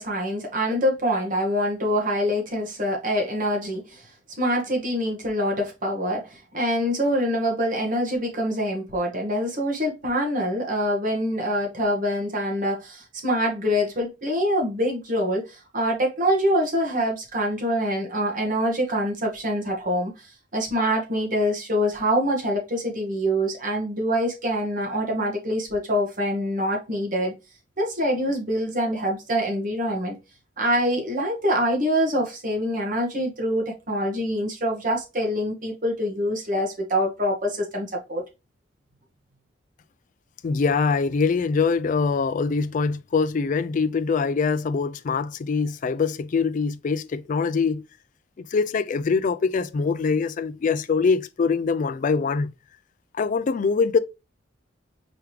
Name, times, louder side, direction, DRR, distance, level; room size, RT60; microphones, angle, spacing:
voice 1, 0.0-4.1 4.4-27.3 27.8-30.2 30.6-38.2, equal, 45° right, 1.5 m, -25 dB
voice 2, 40.4-47.8 48.5-52.5 53.1-54.0, left 5 dB, 40° left, 0.3 m, -23 dB
4.9 x 3.1 x 3.3 m
head